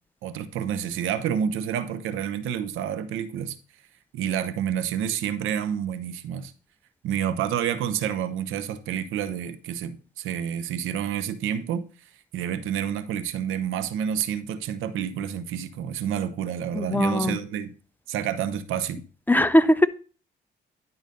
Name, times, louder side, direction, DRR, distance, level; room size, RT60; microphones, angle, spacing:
voice 1, 0.2-3.6 4.1-6.5 7.0-11.8 12.3-17.7 18.1-19.0, right 9 dB, 90° right, 0.9 m, -29 dB
voice 2, 16.7-17.4 19.3-19.9, left 1 dB, 10° left, 0.6 m, -20 dB
11.0 x 4.0 x 5.3 m
cardioid pair, 90°, 20 cm